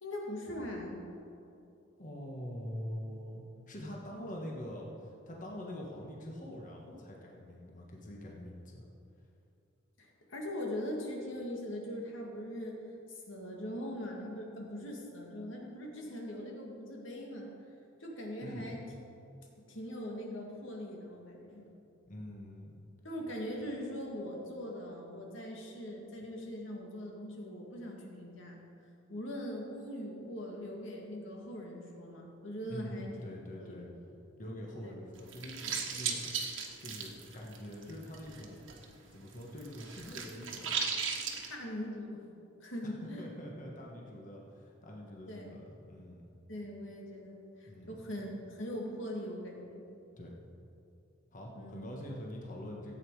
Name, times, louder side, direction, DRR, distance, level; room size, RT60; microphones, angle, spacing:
voice 1, 0.0-1.0 10.0-12.8 13.1-17.5 18.0-18.8 19.7-21.7 23.0-28.6 29.1-33.1 33.5-33.8 34.8-34.9 41.5-42.2 42.6-43.3 45.3-45.5 46.5-49.8 51.6-51.9, equal, 80° left, -1 dB, 2.1 m, -41 dB
voice 2, 2.0-8.9 18.4-18.7 22.1-22.7 32.7-33.9 34.4-36.3 36.6-38.6 39.1-40.7 43.0-46.2 47.6-47.9 50.2-50.4 51.3-53.0, equal, 45° left, -1 dB, 1.4 m, -44 dB
sound 1, 35.2-38.9 39.1-41.5, right 6 dB, 80° right, 1.4 m, -37 dB
14.5 x 8.5 x 4.8 m, 2.7 s
head